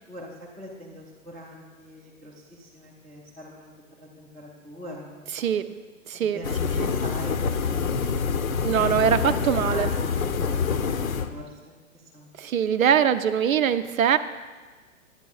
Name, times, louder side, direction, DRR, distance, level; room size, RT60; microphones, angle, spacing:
voice 1, 0.6-2.3 2.6-3.7 4.0-5.5 6.2-7.9 8.7-8.9 9.5-10.9 11.3-11.5 12.1-12.3, equal, ahead, -9 dB, 0.3 m, -42 dB
voice 2, 5.3-5.6 6.1-6.4 6.8-6.9 8.6-9.9 12.4-14.2, right 8 dB, 85° right, 11 dB, 0.6 m, -22 dB
sound 1, 6.4-11.4, left 5 dB, 90° left, 0.6 m, -26 dB
10.5 x 9.0 x 2.3 m, 1.3 s
hypercardioid pair, 125°, 40 cm